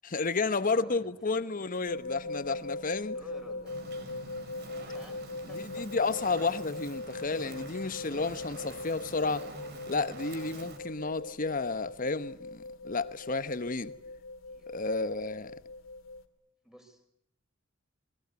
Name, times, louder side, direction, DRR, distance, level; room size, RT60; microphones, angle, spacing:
voice 1, 0.0-3.1 5.5-9.5 9.9-13.9 14.7-15.5, left 3 dB, 40° left, 1.1 m, -31 dB
voice 2, 0.6-1.7 2.9-4.2 4.9-5.9 11.0-11.4 13.2-13.3 14.5-14.7 16.6-17.1, equal, 5° right, 5.0 m, -53 dB
sound 1, 1.8-16.2, left 2 dB, 85° left, 2.4 m, -41 dB
Fire, 3.7-10.8, right 2 dB, 55° right, 4.7 m, -47 dB
27.5 x 20.5 x 9.5 m
head